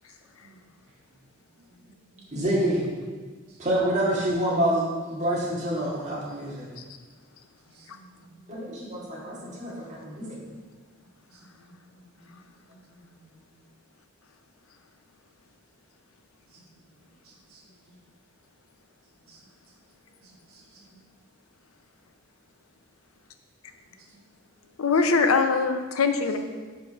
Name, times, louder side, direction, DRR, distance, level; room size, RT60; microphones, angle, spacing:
voice 1, 1.7-2.2 3.5-3.6 7.6-8.8 9.3-9.7 11.3-13.6 16.5-16.6 16.9-18.0 19.3-19.7 20.2-21.0 23.9-24.2 24.5-24.7, right 2 dB, 80° right, -8 dB, 1.5 m, -57 dB
voice 2, 2.3-2.8 3.6-4.8 5.1-6.7 8.5-10.4, right 1 dB, 35° right, -5 dB, 1.7 m, -27 dB
voice 3, 24.8-26.4, left 4 dB, 85° left, 7 dB, 0.6 m, -22 dB
5.0 x 4.6 x 6.0 m, 1.4 s
head